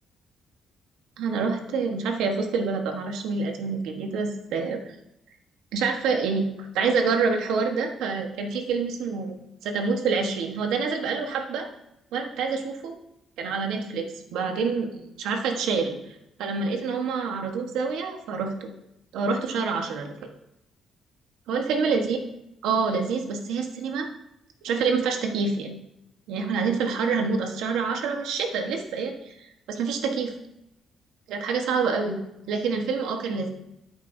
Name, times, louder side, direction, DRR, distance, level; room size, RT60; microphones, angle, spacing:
voice 1, 1.2-4.8 5.7-6.5 6.7-11.7 12.1-12.9 13.4-16.0 16.4-18.7 19.1-20.1 21.5-22.2 22.6-24.1 24.6-25.8 26.3-30.3 31.3-32.2 32.5-33.5, right 5 dB, 90° right, 4 dB, 1.2 m, -27 dB
11.0 x 9.6 x 2.7 m, 0.84 s
cardioid pair, 90°, 0 cm